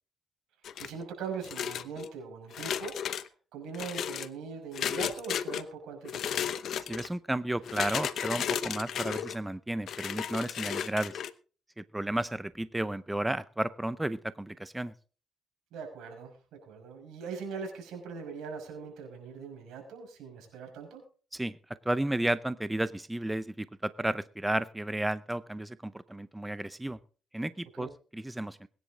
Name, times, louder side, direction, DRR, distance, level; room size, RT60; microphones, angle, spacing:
sound 1, 0.6-1.0 1.4-2.1 2.5-3.3 3.7-4.3 4.7-5.6 6.0-7.1 7.6-9.4 9.9-11.3, left 9 dB, 65° left, 0.9 m, -34 dB
voice 1, 0.8-6.4 15.7-21.0 27.7-27.9, right 5 dB, 85° right, 2 dB, 5.8 m, -41 dB
voice 2, 6.9-11.2 11.8-14.9 21.3-21.6 21.9-27.0 27.3-28.7, right 1 dB, 10° right, 15 dB, 0.6 m, -33 dB
21.0 x 10.5 x 3.8 m, 0.39 s
cardioid pair, 90°, 0 cm